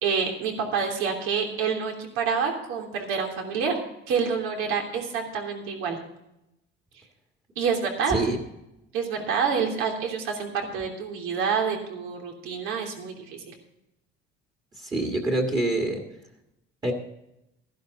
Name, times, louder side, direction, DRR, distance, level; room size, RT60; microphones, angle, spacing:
voice 1, 0.0-3.8 4.1-6.0 7.6-8.2 8.9-13.5, right 6 dB, 85° right, 2 dB, 3.2 m, -27 dB
voice 2, 8.1-8.4 14.8-16.0 16.8-16.9, right 2 dB, 20° right, 1 dB, 1.7 m, -25 dB
14.0 x 11.5 x 3.9 m, 0.85 s
cardioid pair, 155°, 20 cm